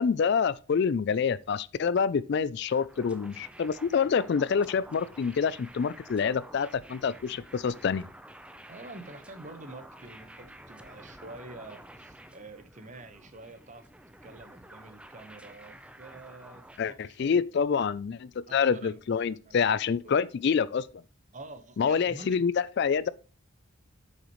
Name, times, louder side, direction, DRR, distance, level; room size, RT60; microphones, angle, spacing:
voice 1, 0.0-8.0 16.8-20.9 21.8-23.1, left 6 dB, 50° left, 0.3 m, -27 dB
sound 1, 2.7-16.8, right 1 dB, 5° right, 0.6 m, -50 dB
voice 2, 8.7-13.9 14.2-17.7 18.5-19.0 19.3-20.2 21.3-22.4, right 2 dB, 35° right, 1.0 m, -47 dB
8.1 x 6.5 x 3.0 m
head